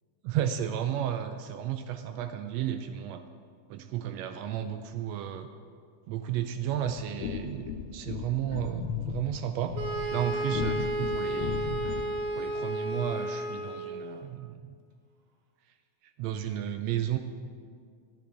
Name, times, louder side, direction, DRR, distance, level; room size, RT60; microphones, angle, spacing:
voice 1, 0.2-3.2 3.7-5.5 6.1-9.8 10.1-11.9 12.3-14.8 16.0-17.2, right 10 dB, 85° right, 8 dB, 1.5 m, -33 dB
sound 1, 6.8-12.2, left 7 dB, 75° left, 1.6 m, -36 dB
sound 2, 9.7-14.1, right 1 dB, 60° right, 1.8 m, -32 dB
13.5 x 11.5 x 4.7 m, 2.1 s
omnidirectional pair, 3.6 m